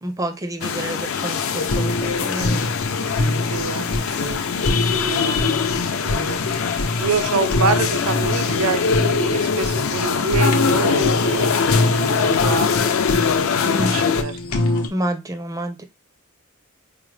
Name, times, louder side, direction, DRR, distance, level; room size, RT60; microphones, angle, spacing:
voice 1, 0.0-2.6 13.6-14.0 14.9-15.8, right 1 dB, 15° right, 0.5 m, -28 dB
sound 1, 0.6-14.2, left 6 dB, 65° left, 0.5 m, -22 dB
Fire, 1.6-14.9, left 1 dB, 85° left, 0.8 m, -25 dB
voice 2, 3.4-4.4 4.8-5.4 5.8-12.9 13.8-14.4, right 4 dB, 85° right, 0.5 m, -27 dB
4.9 x 2.1 x 3.2 m
head